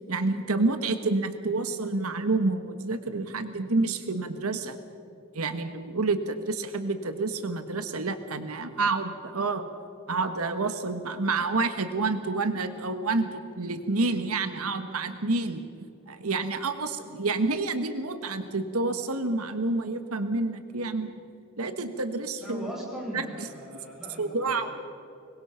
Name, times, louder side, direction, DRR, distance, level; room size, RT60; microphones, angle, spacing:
voice 1, 0.1-4.8 5.3-9.7 10.1-15.6 16.1-21.1 21.6-22.7 23.1-23.5 24.2-24.7, right 3 dB, 85° right, 9 dB, 1.4 m, -28 dB
voice 2, 22.4-24.8, equal, ahead, -4 dB, 7.3 m, -39 dB
26.0 x 22.5 x 5.7 m, 2.7 s
head